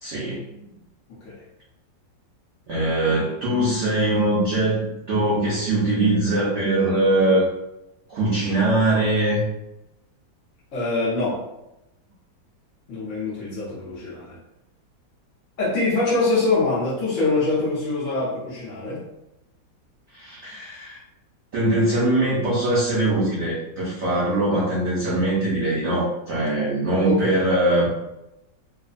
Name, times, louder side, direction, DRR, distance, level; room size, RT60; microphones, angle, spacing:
voice 1, 0.0-0.4 2.7-7.4 8.1-9.4 20.1-21.0 21.5-27.9, right 1 dB, 90° right, -6 dB, 0.6 m, -22 dB
voice 2, 10.7-11.4 12.9-14.4 15.6-19.0 27.0-27.5, left 3 dB, 55° left, -9 dB, 0.9 m, -24 dB
3.1 x 2.0 x 2.5 m, 0.89 s
omnidirectional pair, 2.0 m